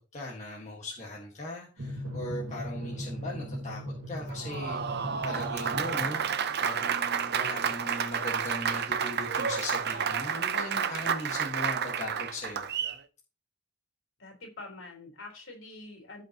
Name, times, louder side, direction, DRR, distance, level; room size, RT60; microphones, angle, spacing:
voice 1, 0.1-3.8 4.1-6.2 6.6-12.7, left 1 dB, 35° left, 1.6 m, -39 dB
Drum, 1.8-6.9, equal, 70° right, 2.2 m, -39 dB
Applause, 4.3-13.0, right 7 dB, 50° right, 0.7 m, -30 dB
voice 2, 14.2-16.2, left 2 dB, 60° left, 3.9 m, -45 dB
16.0 x 5.4 x 3.0 m
head